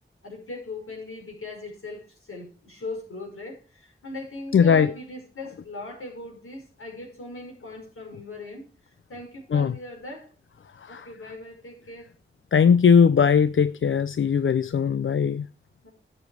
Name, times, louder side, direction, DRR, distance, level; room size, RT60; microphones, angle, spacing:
voice 1, 0.2-8.6 9.1-10.3 10.9-12.1 15.8-15.9, left 2 dB, 85° left, 5.3 m, -39 dB
voice 2, 4.5-4.9 9.5-9.7 10.8-11.1 12.5-15.5, left 6 dB, 70° left, 0.5 m, -19 dB
12.0 x 7.3 x 6.3 m
cardioid pair, 45°, 21 cm